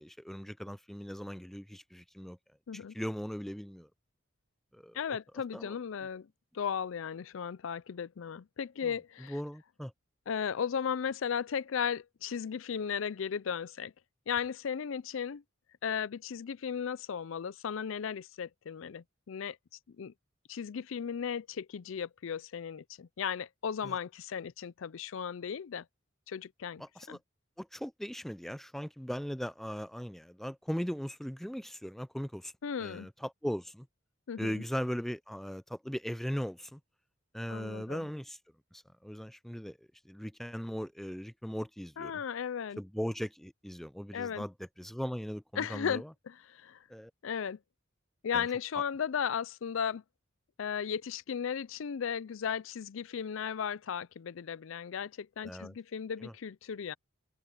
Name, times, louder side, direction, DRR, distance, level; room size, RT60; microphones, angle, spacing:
voice 1, 0.0-2.4 2.7-3.9 4.7-5.0 5.5-5.8 8.8-8.9 9.3-9.9 23.8-23.9 26.8-27.2 27.6-32.5 32.8-33.9 34.4-36.8 37.3-38.4 38.7-39.8 40.1-42.1 42.8-46.1 46.9-47.1 48.3-48.5 55.4-55.7 56.2-56.3, equal, ahead, 0.4 m, -38 dB
voice 2, 4.9-6.3 6.5-9.4 10.3-13.9 14.3-15.4 15.8-19.6 19.9-20.1 20.5-25.8 26.3-26.8 27.1-27.2 32.6-33.1 34.3-34.6 37.5-38.1 42.0-42.8 44.1-44.4 45.6-46.8 47.2-47.6 48.2-50.0 50.6-57.0, left 7 dB, 70° left, 0.4 m, -36 dB
head